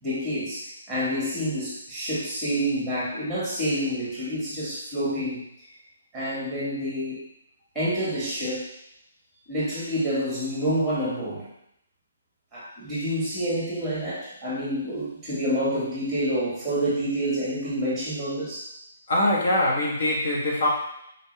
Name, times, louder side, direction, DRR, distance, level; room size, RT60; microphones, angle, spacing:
voice 1, 0.0-5.5 6.1-7.2 7.7-8.7 9.5-11.5 12.5-18.6, equal, 5° right, -9 dB, 1.7 m, -28 dB
voice 2, 19.1-20.7, left 1 dB, 55° left, -3 dB, 1.1 m, -23 dB
4.0 x 3.6 x 3.3 m, 0.75 s
hypercardioid pair, 165°, 0 cm